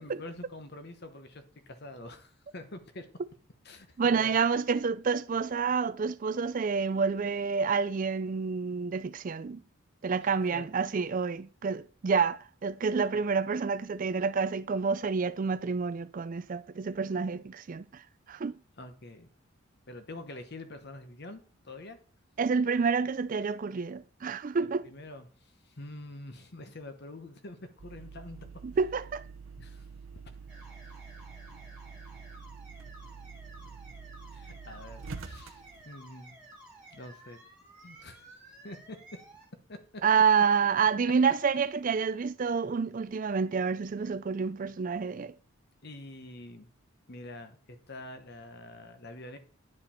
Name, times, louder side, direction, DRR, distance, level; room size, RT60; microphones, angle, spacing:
voice 1, 0.0-3.1 3.6-4.3 10.1-10.2 10.5-10.7 11.6-11.7 13.1-13.2 18.8-19.3 19.9-22.0 24.8-28.5 29.6-29.9 30.2-30.4 34.3-35.6 35.9-36.4 36.9-37.4 37.8-38.3 38.6-39.0 39.7-39.8 45.8-46.7 47.1-49.4, left 2 dB, 50° left, 1.0 m, -46 dB
voice 2, 4.0-9.6 10.0-18.0 18.3-18.6 22.4-24.9 28.6-29.2 40.0-45.3, right 5 dB, 40° right, 0.3 m, -28 dB
sound 1, 27.8-35.8, right 5 dB, 70° right, 0.7 m, -46 dB
sound 2, 30.5-39.5, right 2 dB, 5° right, 2.2 m, -53 dB
11.0 x 5.0 x 4.3 m
head